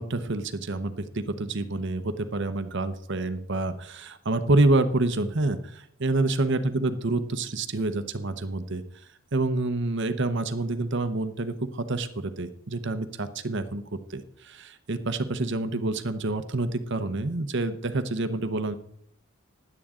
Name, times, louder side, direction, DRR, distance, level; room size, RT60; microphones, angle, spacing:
voice 1, 0.0-8.8 9.3-13.8 14.1-18.7, right 2 dB, 55° right, 10 dB, 0.9 m, -27 dB
16.0 x 11.0 x 3.8 m, 0.68 s
head